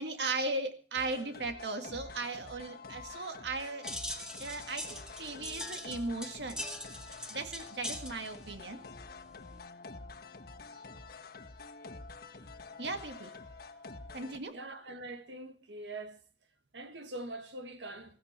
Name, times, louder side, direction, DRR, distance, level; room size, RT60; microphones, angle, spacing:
voice 1, 0.0-3.9 4.4-6.7 7.3-8.8 12.8-13.3 14.1-14.6, right 3 dB, 70° right, 2.0 m, -37 dB
sound 1, 0.9-14.4, left 3 dB, 60° left, 1.4 m, -48 dB
sound 2, 3.8-9.6, left 1 dB, 5° right, 1.9 m, -43 dB
voice 2, 14.5-16.2 16.7-18.2, right 2 dB, 90° right, 1.7 m, -43 dB
16.5 x 14.5 x 4.5 m
head